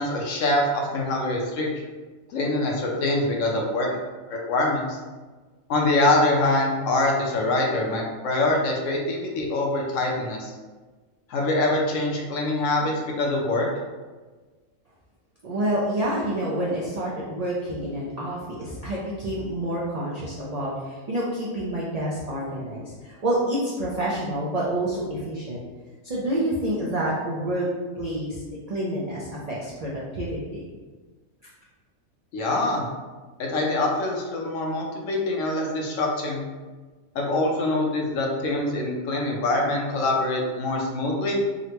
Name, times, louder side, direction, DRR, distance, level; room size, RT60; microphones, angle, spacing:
voice 1, 0.0-1.7 2.3-3.9 4.3-5.0 5.7-10.5 11.3-13.7 32.3-32.8 33.4-36.4 37.1-41.4, left 2 dB, 70° left, 0 dB, 0.9 m, -24 dB
voice 2, 15.4-25.6 26.0-27.7 28.0-28.4 28.7-30.6, right 1 dB, 80° right, -6 dB, 0.3 m, -28 dB
3.7 x 2.1 x 2.9 m, 1.3 s
omnidirectional pair, 1.4 m